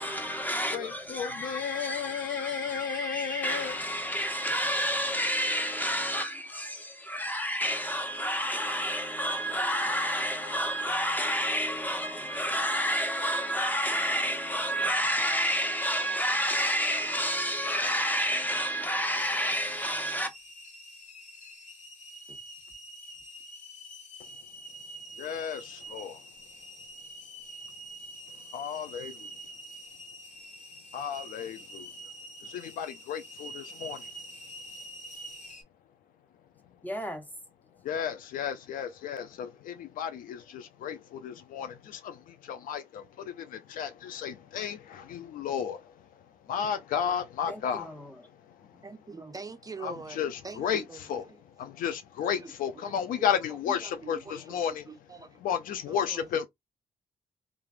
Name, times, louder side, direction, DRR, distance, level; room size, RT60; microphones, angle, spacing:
voice 1, 0.0-20.3 36.8-37.2 47.5-48.1, equal, 10° left, 1.1 m, -30 dB
voice 2, 0.7-3.8 25.2-26.2 28.5-29.1 30.9-31.9 32.5-34.0 37.8-45.8 46.5-47.9 49.8-50.8 51.1-51.2 51.6-54.8 55.4-56.5, left 8 dB, 75° left, 0.4 m, -33 dB
sound 1, 19.1-35.6, right 1 dB, 55° left, 1.2 m, -46 dB
voice 3, 48.8-51.4 52.4-55.4 55.9-56.4, right 4 dB, 25° right, 0.5 m, -44 dB
3.1 x 2.3 x 2.4 m
supercardioid pair, 50°, 15 cm